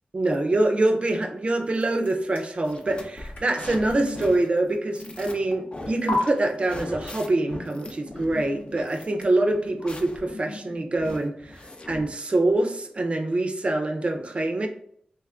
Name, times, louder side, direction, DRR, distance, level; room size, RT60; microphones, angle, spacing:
voice 1, 0.1-11.6 11.9-14.7, right 2 dB, 40° right, 5 dB, 0.5 m, -25 dB
sound 1, 1.6-5.4 6.1-6.2, left 1 dB, 85° left, 0.9 m, -40 dB
sound 2, 2.7-12.2, left 2 dB, 35° left, 0.5 m, -40 dB
3.1 x 2.4 x 3.3 m, 0.65 s
wide cardioid pair, 105°, 3 cm